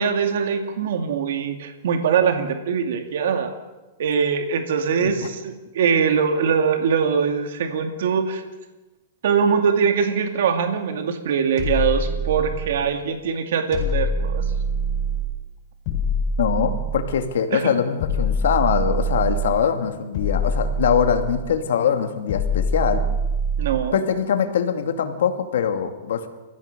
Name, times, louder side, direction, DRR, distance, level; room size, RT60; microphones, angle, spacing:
voice 1, 0.0-3.5 4.0-8.4 9.2-14.4 17.5-17.7 23.6-24.0, right 6 dB, 70° right, 5 dB, 2.4 m, -22 dB
sound 1, 11.6-12.9 13.7-15.4 15.9-17.3 18.0-19.6 20.1-21.5 22.3-23.9, right 1 dB, 40° left, 7.9 m, -24 dB
voice 2, 16.4-23.0 23.9-26.3, left 8 dB, 80° left, 7 dB, 2.3 m, -22 dB
29.5 x 15.5 x 6.8 m, 1.1 s
supercardioid pair, 155°, 0 cm